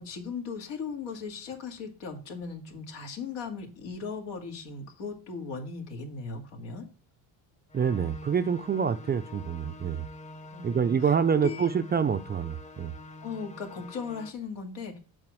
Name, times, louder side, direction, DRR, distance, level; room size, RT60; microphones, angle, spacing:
voice 1, 0.0-6.9 10.5-11.7 13.2-15.0, left 5 dB, 80° left, 2.2 m, -38 dB
sound 1, 7.7-14.3, left 2 dB, 15° left, 0.9 m, -46 dB
voice 2, 7.7-10.0 10.6-12.9, right 7 dB, 25° right, 0.4 m, -26 dB
7.5 x 5.0 x 6.1 m
cardioid pair, 100°, 42 cm